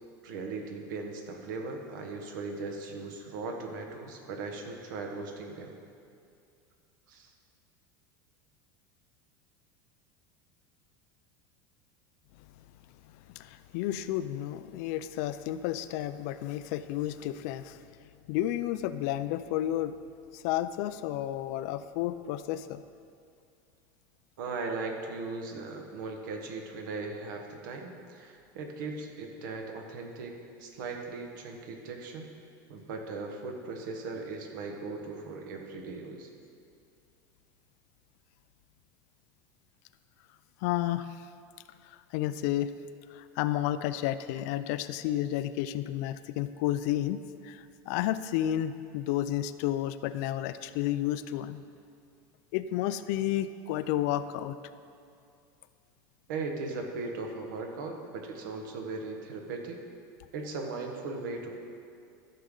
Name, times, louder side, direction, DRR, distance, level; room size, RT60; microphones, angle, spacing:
voice 1, 0.2-5.7 7.1-7.3 24.4-32.3 32.7-36.3 56.3-59.8 60.3-61.6, right 3 dB, 75° right, 3 dB, 1.4 m, -38 dB
voice 2, 13.4-17.8 18.3-20.0 20.3-22.8 40.6-41.1 41.9-42.7 43.1-47.2 47.4-51.6 52.5-54.6, left 13 dB, 55° left, 12 dB, 0.4 m, -31 dB
14.0 x 6.6 x 3.8 m, 2.4 s
supercardioid pair, 170°, 10 cm